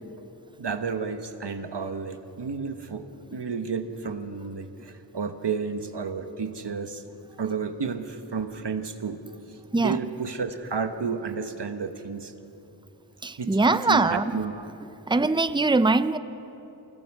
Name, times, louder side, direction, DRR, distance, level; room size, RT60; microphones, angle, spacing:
voice 1, 0.6-7.0 7.4-9.2 9.5-12.3 13.4-14.5, right 5 dB, 80° right, 8 dB, 1.2 m, -32 dB
voice 2, 13.2-14.3 15.1-16.2, right 3 dB, 10° right, 13 dB, 0.6 m, -22 dB
28.5 x 20.5 x 4.8 m, 3.0 s
wide cardioid pair, 60°, 40 cm